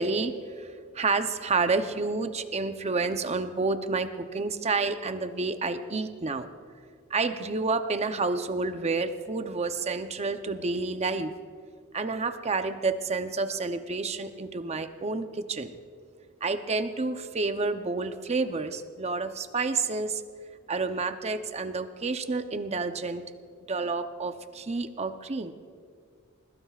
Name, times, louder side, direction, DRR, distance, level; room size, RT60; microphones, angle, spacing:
voice 1, 0.0-6.5 7.1-11.3 11.9-15.8 16.4-20.2 20.7-23.2 23.7-25.5, right 3 dB, 30° right, 9 dB, 0.7 m, -29 dB
21.0 x 20.5 x 2.4 m, 2.1 s
head